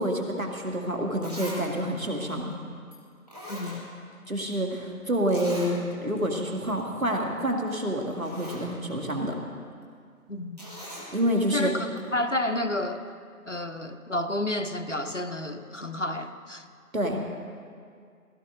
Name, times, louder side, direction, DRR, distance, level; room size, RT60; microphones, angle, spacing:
voice 1, 0.0-2.5 4.3-9.4 11.1-11.7 16.9-17.3, equal, 60° right, 2 dB, 2.0 m, -28 dB
Zipper (clothing), 1.2-1.6 2.0-2.1 2.9-3.0 3.3-4.3 4.5-4.6 5.3-5.7 6.2-6.3 6.6-6.8 7.7-7.8 8.1-8.7 10.6-11.1 12.0-12.1, equal, 25° right, 1.9 m, -41 dB
voice 2, 3.5-3.9 10.3-10.6 11.5-11.9 12.1-13.0 13.5-16.6, left 1 dB, 55° left, 6 dB, 0.8 m, -30 dB
17.0 x 14.0 x 3.8 m, 2.1 s
figure-of-eight pair, 175°, 45 cm